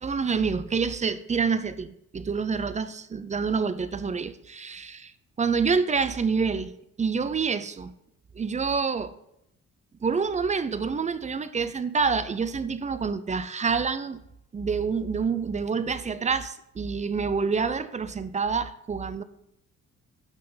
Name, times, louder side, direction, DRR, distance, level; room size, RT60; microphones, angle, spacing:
voice 1, 0.0-5.1 5.4-6.7 7.0-7.9 8.4-9.1 10.0-14.2 14.5-19.2, right 5 dB, 25° right, 0.5 m, -27 dB
8.8 x 5.8 x 4.0 m
cardioid pair, 90°, 30 cm